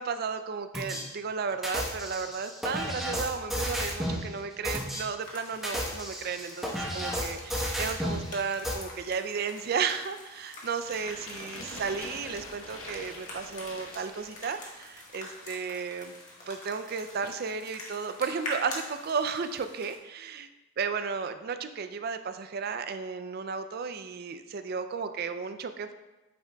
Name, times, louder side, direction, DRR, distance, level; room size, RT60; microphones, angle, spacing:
voice 1, 0.0-16.1 16.5-20.5 20.8-25.9, right 5 dB, 50° right, 9 dB, 0.4 m, -34 dB
sound 1, 0.7-1.0 1.6-4.2 4.6-5.0 5.5-8.2 8.6-8.7, equal, ahead, 1.1 m, -32 dB
sound 2, 5.2-20.0, left 1 dB, 40° left, 1.4 m, -45 dB
sound 3, 10.8-14.8, left 2 dB, 70° left, 1.0 m, -44 dB
8.7 x 5.7 x 2.3 m, 1.1 s
head